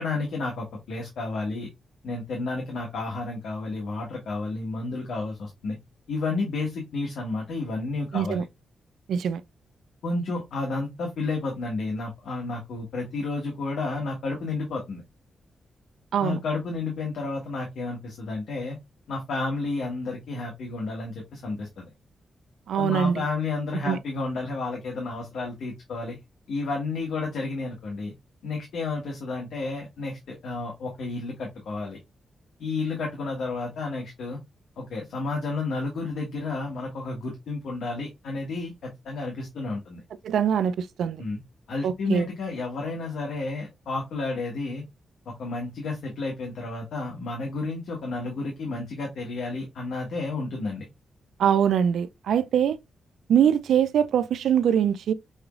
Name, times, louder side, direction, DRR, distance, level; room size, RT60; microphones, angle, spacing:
voice 1, 0.0-1.7 2.0-5.8 6.1-8.4 10.0-15.0 16.2-18.8 19.1-21.8 22.7-26.2 26.5-28.1 28.4-32.0 32.6-34.4 34.8-40.0 41.2-41.4 41.7-44.8 45.2-50.9, left 3 dB, 85° left, 1.5 m, -31 dB
voice 2, 8.1-8.4 9.1-9.4 16.1-16.4 22.7-23.2 23.9-24.0 40.2-41.2 41.8-42.3 51.4-52.8 53.3-55.1, right 8 dB, 90° right, 0.4 m, -23 dB
6.2 x 3.0 x 2.4 m
cardioid pair, 110°, 0 cm